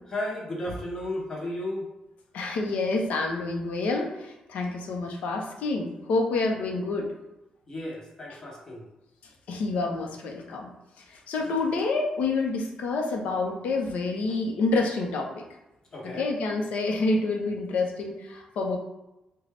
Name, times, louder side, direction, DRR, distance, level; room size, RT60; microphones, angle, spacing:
voice 1, 0.1-1.9 7.7-8.9 15.9-16.3, left 1 dB, 25° left, -2 dB, 0.8 m, -34 dB
voice 2, 2.3-7.1 9.5-10.7 11.1-15.3 16.0-18.8, left 3 dB, 90° left, 1 dB, 0.7 m, -28 dB
3.8 x 2.2 x 3.3 m, 0.94 s
wide cardioid pair, 170°, 2 cm